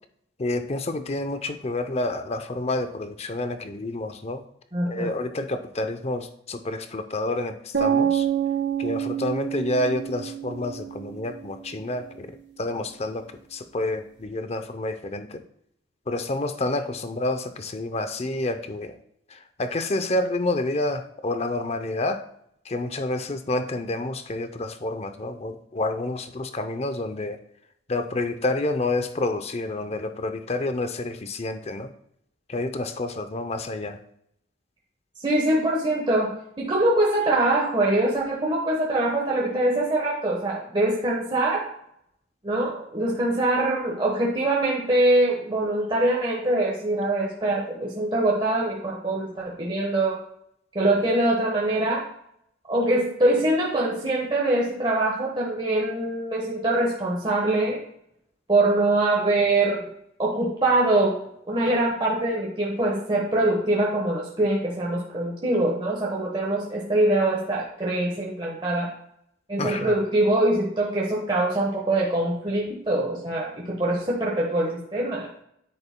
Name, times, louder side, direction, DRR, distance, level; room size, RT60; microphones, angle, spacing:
voice 1, 0.4-4.4 4.9-8.2 8.8-12.3 12.6-13.3 13.5-15.4 16.1-18.9 19.6-22.2 22.7-27.4 27.9-31.9 32.5-34.0 69.6-69.9, left 2 dB, 35° left, 9 dB, 0.6 m, -29 dB
voice 2, 4.7-5.1 35.2-36.3 36.6-41.7 42.4-50.2 50.7-52.0 52.7-57.8 58.5-59.9 60.2-68.9 69.5-75.3, right 2 dB, 25° right, -3 dB, 1.2 m, -23 dB
sound 1, 7.7-11.7, right 9 dB, 75° right, 2.1 m, -27 dB
9.8 x 8.6 x 2.2 m, 0.73 s
head